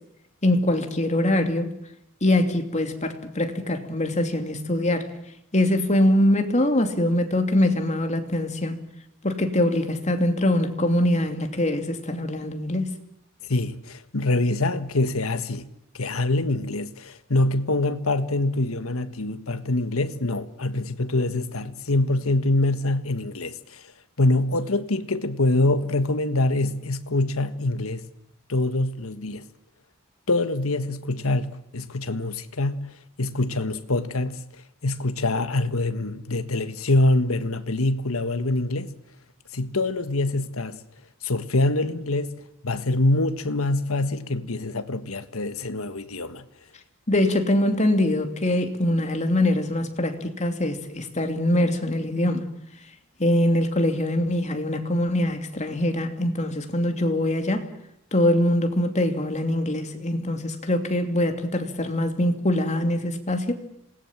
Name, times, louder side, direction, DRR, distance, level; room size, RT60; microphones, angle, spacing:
voice 1, 0.4-1.7 2.2-5.1 5.5-8.8 9.2-12.9 47.1-52.4 53.2-57.7 58.1-63.5, left 1 dB, 35° left, 2.9 m, -23 dB
voice 2, 13.5-15.7 15.9-23.8 24.2-28.0 28.5-29.4 30.3-32.9 33.2-34.4 34.8-38.9 39.5-40.8 41.2-42.3 42.6-46.4, left 2 dB, 75° left, 1.6 m, -25 dB
27.0 x 19.5 x 7.4 m
head